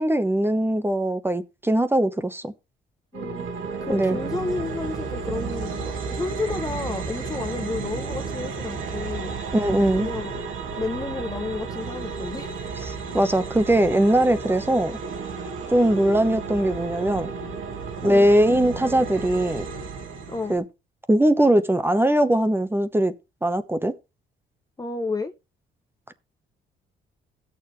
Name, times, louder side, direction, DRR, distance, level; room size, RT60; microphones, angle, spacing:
voice 1, 0.0-2.5 3.9-4.2 9.5-10.1 12.8-15.0 15.7-17.3 18.0-19.7 20.5-20.6 21.1-23.1 23.4-23.9, right 1 dB, 10° right, 1.0 m, -21 dB
voice 2, 3.1-3.5 3.8-9.3 10.0-10.4 10.8-12.7 18.0-18.3 20.3-20.6 24.8-25.3, left 3 dB, 20° left, 0.8 m, -31 dB
sound 1, 3.1-20.6, right 4 dB, 80° right, 2.2 m, -32 dB
16.0 x 6.9 x 3.3 m
cardioid pair, 90°, 20 cm